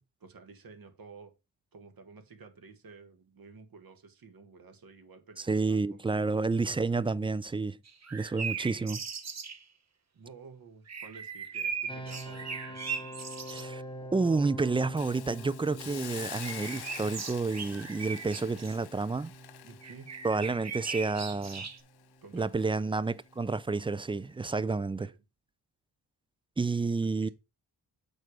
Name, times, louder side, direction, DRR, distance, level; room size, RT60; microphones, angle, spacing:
voice 1, 0.0-1.3 1.7-6.3 8.4-8.6 10.1-12.8 19.6-20.1 22.2-22.9 25.0-25.2 27.2-27.3, right 4 dB, 60° right, 1.6 m, -52 dB
voice 2, 5.4-7.8 8.1-9.0 13.5-13.8 14.1-19.3 20.2-21.7 22.3-25.1 26.6-27.3, right 3 dB, 15° right, 0.3 m, -30 dB
sound 1, 7.9-9.6 10.9-13.6 16.1-18.8 19.8-21.8, right 6 dB, 40° right, 1.2 m, -38 dB
sound 2, 11.9-24.7, right 1 dB, 10° left, 0.8 m, -47 dB
Hiss, 15.0-22.0 22.4-22.6, left 12 dB, 70° left, 0.6 m, -46 dB
6.8 x 4.3 x 4.8 m
cardioid pair, 60°, 41 cm